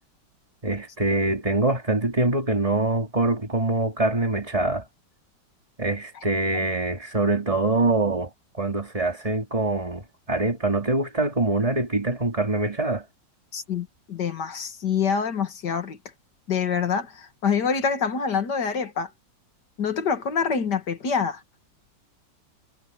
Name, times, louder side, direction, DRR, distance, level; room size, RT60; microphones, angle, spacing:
voice 1, 0.6-4.8 5.8-8.3 8.6-13.0, right 2 dB, 20° right, 2.7 m, -24 dB
voice 2, 13.5-16.0 16.5-19.1 19.8-21.4, left 6 dB, 60° left, 2.5 m, -26 dB
omnidirectional pair, 2.1 m